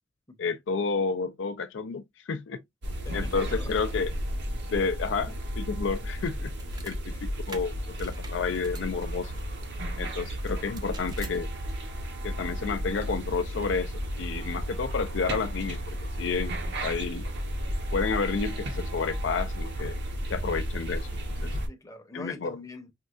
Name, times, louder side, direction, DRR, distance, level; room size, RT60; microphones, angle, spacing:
voice 1, 0.4-2.6 3.1-4.1 4.7-6.5 6.8-9.3 10.0-11.5 12.2-16.6 16.8-17.2 17.9-20.0 20.3-21.5 22.1-22.6, left 5 dB, 70° left, 0.4 m, -30 dB
sound 1, 2.8-21.7, equal, 65° right, 0.9 m, -33 dB
voice 2, 3.0-3.7 21.7-22.9, left 2 dB, 20° left, 0.7 m, -43 dB
sound 2, 6.4-7.0 7.5-9.5 10.5-11.4, right 4 dB, 20° right, 0.5 m, -47 dB
4.5 x 2.2 x 2.4 m
head